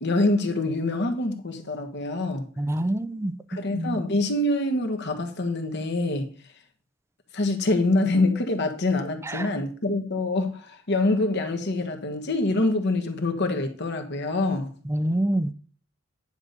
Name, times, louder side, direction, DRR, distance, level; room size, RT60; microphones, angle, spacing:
voice 1, 0.0-2.5 3.5-6.3 7.3-14.7, left 2 dB, 55° left, 1.5 m, -25 dB
voice 2, 2.6-3.3 3.7-4.0 9.2-9.5 14.9-15.5, right 1 dB, 15° right, 0.5 m, -26 dB
10.0 x 4.0 x 6.6 m
head